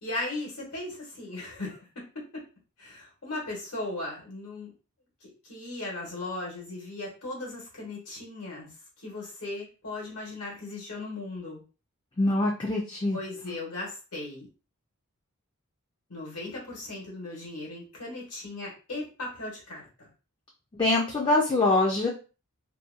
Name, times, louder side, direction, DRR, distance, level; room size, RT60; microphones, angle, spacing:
voice 1, 0.0-2.4 2.8-4.7 5.2-8.7 9.0-11.6 13.1-14.5 16.1-20.1, left 2 dB, 85° left, -3 dB, 1.1 m, -37 dB
voice 2, 12.2-13.2 13.4-13.5 20.8-22.1, left 2 dB, 20° left, -2 dB, 0.4 m, -24 dB
2.6 x 2.1 x 2.4 m, 0.34 s
head